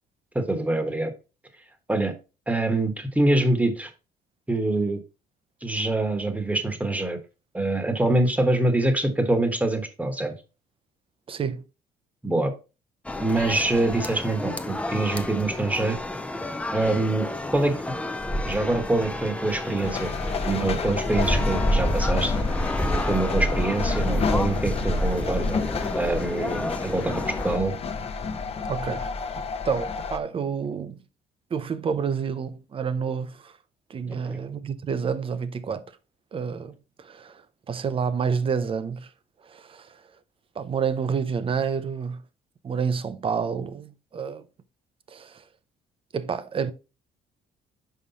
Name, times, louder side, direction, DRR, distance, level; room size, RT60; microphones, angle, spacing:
voice 1, 0.3-1.1 1.9-2.1 2.5-3.9 4.5-5.0 5.6-7.2 7.5-10.3 12.2-12.5 13.2-16.0 16.7-17.7 18.5-20.1 20.4-22.3 23.1-25.5 25.9-27.7 34.2-34.4, right 2 dB, 10° right, 1.2 m, -25 dB
voice 2, 11.3-11.6 28.7-31.0 31.5-33.5 33.9-35.8 36.3-37.4 37.7-39.1 39.5-39.9 40.6-42.2 42.6-44.4 45.1-45.4 46.1-46.7, right 6 dB, 30° right, 0.6 m, -29 dB
sound 1, 13.0-27.6, left 1 dB, 5° left, 0.5 m, -28 dB
sound 2, 19.8-30.2, left 5 dB, 35° left, 0.8 m, -31 dB
5.7 x 4.9 x 4.0 m
cardioid pair, 110°, 17 cm